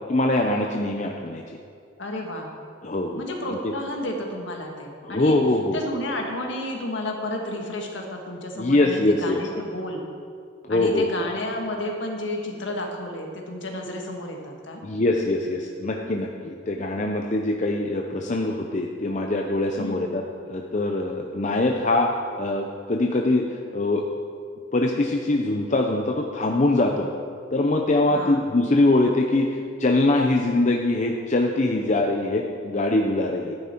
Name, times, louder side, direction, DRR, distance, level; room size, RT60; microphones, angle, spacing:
voice 1, 0.1-1.6 2.8-3.7 5.0-5.8 8.6-9.4 10.7-11.1 14.8-20.2 20.5-24.0 24.7-27.1 27.5-33.5, left 2 dB, 35° left, 1 dB, 0.6 m, -23 dB
voice 2, 2.0-2.5 3.1-5.4 5.7-10.0 10.7-14.8 19.8-20.1 28.1-28.4, left 1 dB, 65° left, 1 dB, 1.6 m, -31 dB
13.0 x 9.8 x 4.4 m, 2.2 s
head